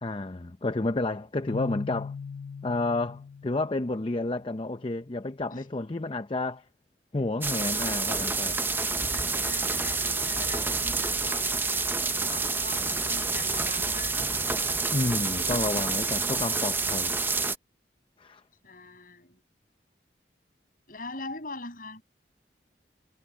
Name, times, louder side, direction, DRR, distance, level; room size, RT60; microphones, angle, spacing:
voice 1, 0.0-2.1 2.6-6.7 7.1-8.6 14.9-17.1 18.2-18.4, left 2 dB, 30° left, 0.6 m, -30 dB
Keyboard (musical), 1.5-4.4, left 6 dB, 80° left, 0.4 m, -40 dB
sound 1, 7.4-17.6, right 4 dB, 10° right, 0.6 m, -28 dB
voice 2, 9.1-14.2 18.6-19.4 20.9-22.0, left 3 dB, 50° left, 7.1 m, -42 dB
head